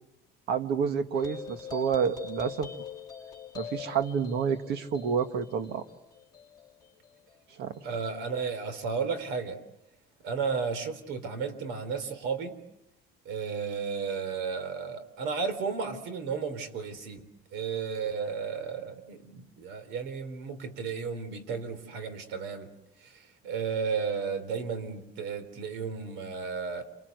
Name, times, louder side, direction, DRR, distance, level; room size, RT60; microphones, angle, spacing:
voice 1, 0.5-2.7 3.6-5.8 7.6-7.8, right 7 dB, 65° right, 9 dB, 1.8 m, -29 dB
sound 1, 1.1-8.0, left 7 dB, 20° left, 2.5 m, -43 dB
voice 2, 7.8-9.6 10.2-12.6 13.3-22.7 23.0-26.8, right 5 dB, 85° right, 12 dB, 3.7 m, -33 dB
28.5 x 25.5 x 8.0 m, 0.86 s
cardioid pair, 160°, 18 cm